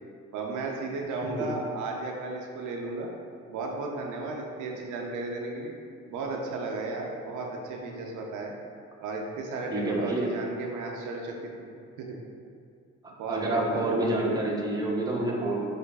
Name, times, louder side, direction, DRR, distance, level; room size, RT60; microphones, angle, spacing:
voice 1, 0.3-3.1 3.5-5.7 6.1-8.5 9.0-12.2 13.2-14.1, right 3 dB, 80° right, 0 dB, 0.5 m, -34 dB
voice 2, 9.7-10.3 13.3-15.7, right 2 dB, 15° right, -3 dB, 0.6 m, -28 dB
4.6 x 2.5 x 2.2 m, 2.3 s
cardioid pair, 90°, 30 cm